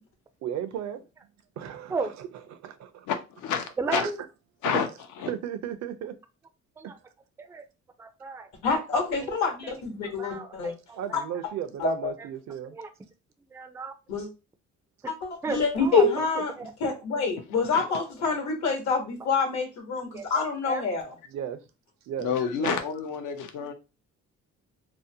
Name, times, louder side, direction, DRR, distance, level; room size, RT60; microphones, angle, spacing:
voice 1, 0.4-1.0 1.6-3.1 3.8-4.1 4.7-4.8 5.3-6.2 6.8-6.9 11.0-12.8 21.3-21.6 22.0-22.8, right 9 dB, 65° right, 0.5 m, -35 dB
voice 2, 3.1-4.0 4.6-4.9 5.2-5.3 17.7-17.8 22.2-23.7, left 7 dB, 80° left, 0.6 m, -29 dB
voice 3, 3.8-4.2 6.8-7.0 7.4-7.6 8.0-8.8 9.6-9.7 10.0-10.7 11.1-11.2 12.7-12.9 13.5-13.9 15.4-16.0 16.6-16.9 20.1-20.8, right 4 dB, 10° right, 0.3 m, -34 dB
voice 4, 8.6-10.7 11.1-11.2 11.8-12.1 14.1-14.3 15.1-21.1, left 4 dB, 65° left, 1.0 m, -27 dB
2.7 x 2.0 x 2.7 m
cardioid pair, 90°, 30 cm